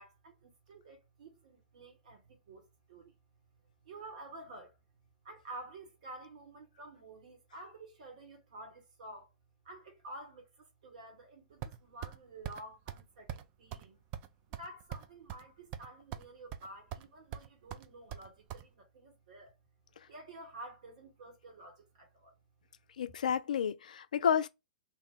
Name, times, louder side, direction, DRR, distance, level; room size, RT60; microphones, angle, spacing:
voice 1, 0.0-3.2 3.8-4.8 5.2-9.3 9.6-14.0 14.5-19.5 20.1-22.4, right 2 dB, 60° right, 1.2 m, -50 dB
sound 1, 11.6-12.2 12.4-12.6 12.9-13.0 13.3-13.4 13.7-13.8 14.1-15.4 15.7-16.3 16.5-17.1 17.3-18.6, right 10 dB, 35° right, 0.4 m, -42 dB
voice 2, 23.0-24.5, left 8 dB, 60° left, 0.3 m, -30 dB
2.9 x 2.2 x 3.5 m
figure-of-eight pair, 105°, 5 cm